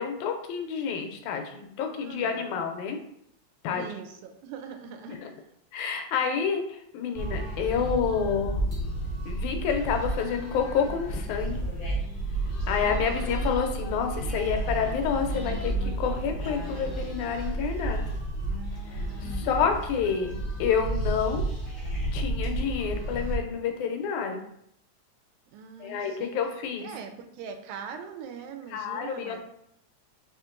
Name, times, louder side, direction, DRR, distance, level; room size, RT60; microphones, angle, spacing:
voice 1, 0.0-3.0 3.6-3.9 5.1-5.3 5.7-8.6 9.3-11.6 12.7-15.7 16.0-18.1 18.9-21.4 22.1-24.4 25.8-26.9 28.7-29.4, left 6 dB, 85° left, 5 dB, 2.0 m, -29 dB
voice 2, 1.8-2.5 3.7-5.2 12.6-13.2 19.0-19.8 25.5-26.4 26.8-29.4, right 6 dB, 85° right, 7 dB, 1.9 m, -42 dB
sound 1, 7.1-23.3, right 1 dB, 50° left, 0.6 m, -31 dB
4.8 x 2.8 x 3.7 m, 0.74 s
omnidirectional pair, 3.4 m